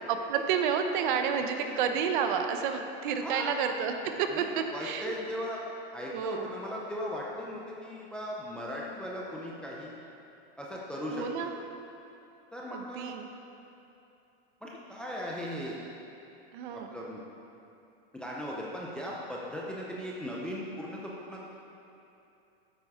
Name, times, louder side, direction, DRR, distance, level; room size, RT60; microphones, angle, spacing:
voice 1, 0.1-5.1 6.1-6.5 11.1-11.6 12.7-13.2 16.5-16.9, right 7 dB, 50° right, 6 dB, 0.8 m, -30 dB
voice 2, 3.2-3.5 4.3-5.6 5.9-9.9 10.6-11.2 12.5-13.1 14.6-15.8 16.7-17.2 18.1-21.4, equal, 5° left, -5 dB, 0.4 m, -38 dB
12.5 x 9.0 x 3.6 m, 2.8 s
supercardioid pair, 160°, 33 cm